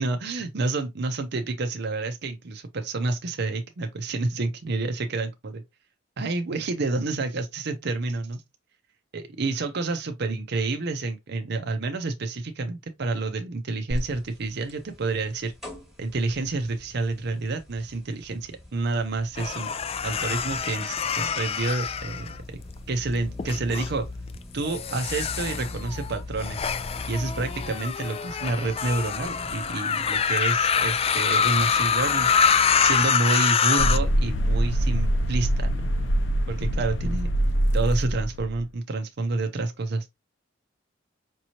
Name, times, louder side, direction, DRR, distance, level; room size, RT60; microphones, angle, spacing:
voice 1, 0.0-5.6 6.2-8.4 9.1-15.5 16.0-19.7 20.0-22.4 22.9-24.1 24.5-26.7 27.0-32.3 32.8-35.9 36.5-37.3 37.7-40.1, right 3 dB, 60° right, 0.6 m, -29 dB
sound 1, 13.9-33.1, left 1 dB, ahead, 1.4 m, -40 dB
sound 2, 19.4-22.8 23.4-23.9 24.6-34.0, left 7 dB, 30° left, 0.3 m, -25 dB
sound 3, 33.8-38.6, equal, 70° left, 0.7 m, -24 dB
5.2 x 3.0 x 2.8 m
head